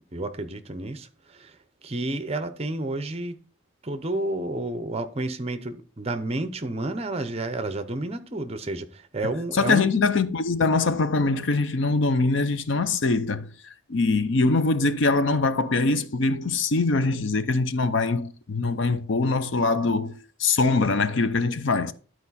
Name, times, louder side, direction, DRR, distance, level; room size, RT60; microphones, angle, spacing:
voice 1, 0.1-3.4 3.8-9.9, right 2 dB, 30° right, 0.7 m, -31 dB
voice 2, 9.5-21.9, left 3 dB, 60° left, 0.6 m, -23 dB
12.0 x 4.6 x 4.1 m
head